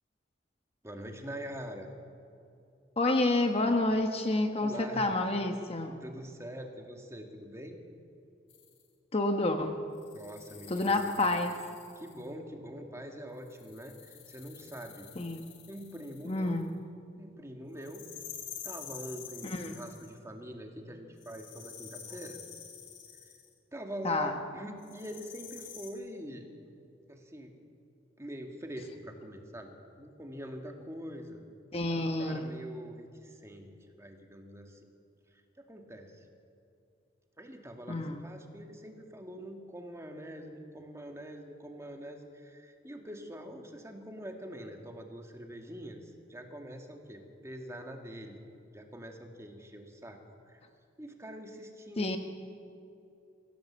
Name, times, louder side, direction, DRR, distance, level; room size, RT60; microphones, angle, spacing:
voice 1, 0.8-1.9 3.6-3.7 4.6-5.1 5.9-7.8 10.1-11.3 12.0-15.1 15.7-16.6 17.2-18.1 18.6-22.4 23.2-23.3 23.7-26.5 27.1-27.6 28.2-31.5 31.9-34.9 35.3-36.3 37.4-48.4 48.7-50.6 51.0-52.2, equal, 15° right, 3 dB, 2.0 m, -44 dB
voice 2, 3.0-5.9 9.1-9.8 10.7-11.6 15.2-15.5 16.3-16.7 19.4-19.8 24.0-24.3 31.7-32.5 37.9-38.2 52.0-52.2, left 2 dB, 30° left, 5 dB, 1.2 m, -29 dB
sound 1, 8.5-8.8 10.0-12.3 13.4-16.6 17.8-20.2 21.2-23.5 24.8-25.9, left 9 dB, 70° left, 3.4 m, -48 dB
24.0 x 16.0 x 7.5 m, 2.6 s
head